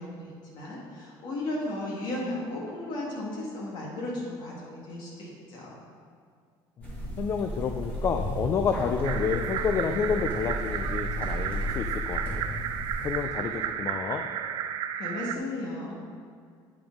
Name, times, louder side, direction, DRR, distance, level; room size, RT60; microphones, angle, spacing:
voice 1, 0.0-5.7 15.0-16.0, left 1 dB, 55° left, -3 dB, 1.5 m, -35 dB
sound 1, 6.8-13.2, equal, 15° left, 2.1 m, -34 dB
voice 2, 7.2-12.4 13.0-14.2, left 6 dB, 30° left, 5 dB, 0.4 m, -29 dB
sound 2, 9.0-15.4, right 9 dB, 55° right, 0.4 m, -33 dB
9.2 x 4.9 x 5.1 m, 2.1 s
cardioid pair, 165°, 9 cm